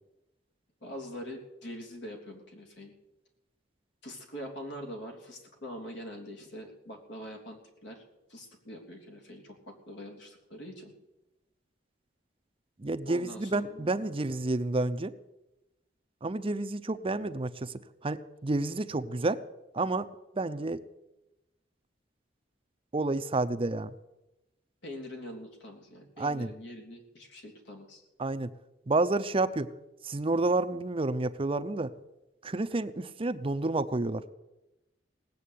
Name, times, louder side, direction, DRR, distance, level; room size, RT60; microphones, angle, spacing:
voice 1, 0.8-2.9 4.0-8.0 8.3-10.9 13.0-13.9 24.8-28.0, equal, 75° left, 1 dB, 3.5 m, -44 dB
voice 2, 12.8-15.1 16.2-17.7 18.0-19.4 19.7-20.1 20.3-20.8 22.9-23.9 26.2-26.5 28.2-28.5 28.9-29.7 30.0-31.9 32.4-34.2, right 2 dB, 30° right, 11 dB, 0.6 m, -29 dB
18.5 x 8.5 x 8.5 m, 0.98 s
head